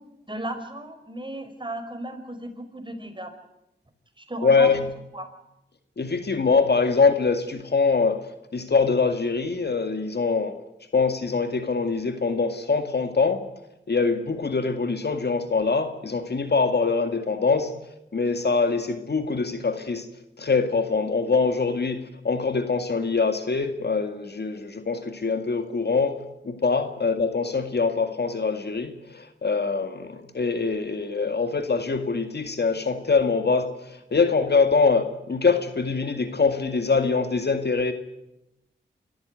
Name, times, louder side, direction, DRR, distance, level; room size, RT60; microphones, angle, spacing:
voice 1, 0.3-3.3 4.2-4.7 5.1-5.3, right 1 dB, 25° right, 5.3 m, -35 dB
voice 2, 4.4-4.8 6.0-8.3 8.5-10.6 10.9-13.5 13.9-17.7 18.1-20.1 20.4-26.2 26.4-37.9, left 4 dB, 55° left, 2.2 m, -23 dB
25.5 x 14.0 x 9.3 m
cardioid pair, 40°, 20 cm